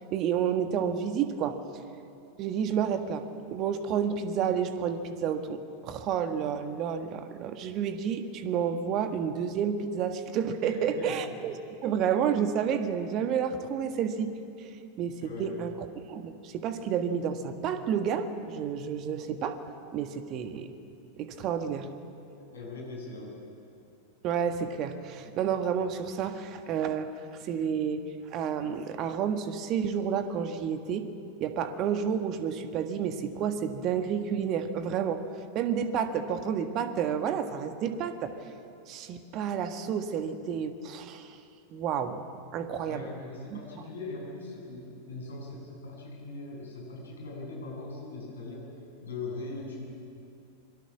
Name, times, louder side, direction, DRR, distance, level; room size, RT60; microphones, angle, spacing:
voice 1, 0.1-1.6 2.4-3.2 3.5-11.6 11.8-14.3 15.0-19.6 19.9-20.7 21.2-21.9 24.2-27.1 27.4-28.0 28.3-31.1 31.4-35.2 35.6-38.5 38.9-41.4 41.7-42.2 42.5-43.1 43.5-43.6, right 7 dB, 35° right, 8 dB, 1.7 m, -30 dB
voice 2, 10.6-11.2 15.2-15.6 22.4-23.5 42.8-48.7 49.0-49.9, left 3 dB, 65° left, -2 dB, 7.6 m, -40 dB
26.5 x 23.0 x 6.2 m, 2.5 s
figure-of-eight pair, 90°, 0 cm